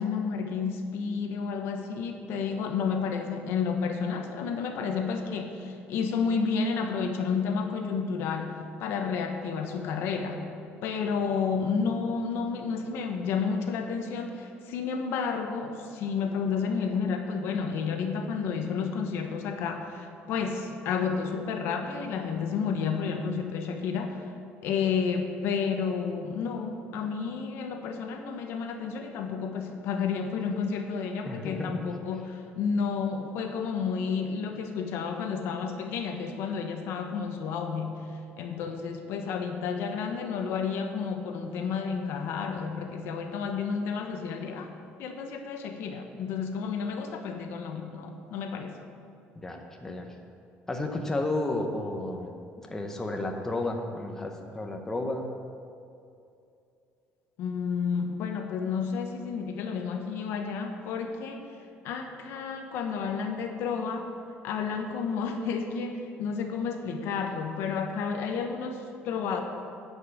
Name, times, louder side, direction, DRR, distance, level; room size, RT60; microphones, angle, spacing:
voice 1, 0.0-8.5 8.8-10.4 10.8-24.2 24.6-38.0 38.4-44.7 45.0-48.8 57.4-61.5 61.8-64.1 64.4-69.4, left 5 dB, 70° left, 5 dB, 1.0 m, -31 dB
voice 2, 31.2-31.7 49.4-50.1 50.7-55.3, left 2 dB, 10° left, 2 dB, 0.7 m, -32 dB
9.9 x 5.4 x 8.3 m, 2.5 s
cardioid pair, 165°, 4 cm